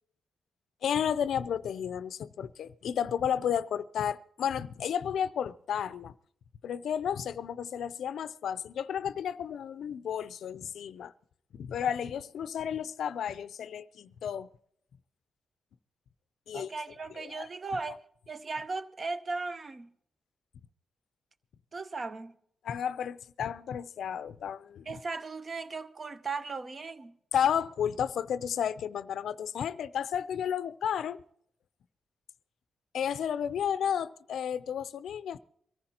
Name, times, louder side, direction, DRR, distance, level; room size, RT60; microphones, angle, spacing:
voice 1, 0.8-6.1 6.6-11.1 11.5-14.5 16.5-16.7 17.2-17.5 22.6-24.9 27.3-31.2 32.9-35.4, left 8 dB, 75° left, 0.5 m, -32 dB
voice 2, 16.5-18.0 18.3-19.9 21.7-22.4 24.9-27.2, right 3 dB, 40° right, 0.8 m, -37 dB
23.0 x 14.5 x 2.9 m
cardioid pair, 85°, 0 cm